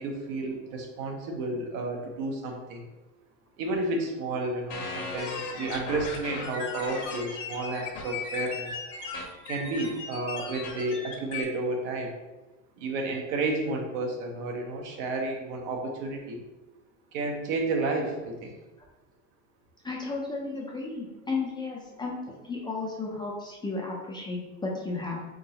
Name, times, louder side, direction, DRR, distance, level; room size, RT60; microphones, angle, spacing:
voice 1, 0.0-2.9 3.6-8.8 9.5-12.1 12.8-16.4 17.1-18.6, right 2 dB, 65° right, 2 dB, 1.0 m, -31 dB
sound 1, 4.7-11.4, left 4 dB, 75° left, 1.1 m, -37 dB
voice 2, 19.8-22.2 22.4-25.3, left 3 dB, 10° left, -3 dB, 0.4 m, -33 dB
3.7 x 3.7 x 2.8 m, 1.1 s
supercardioid pair, 130°, 38 cm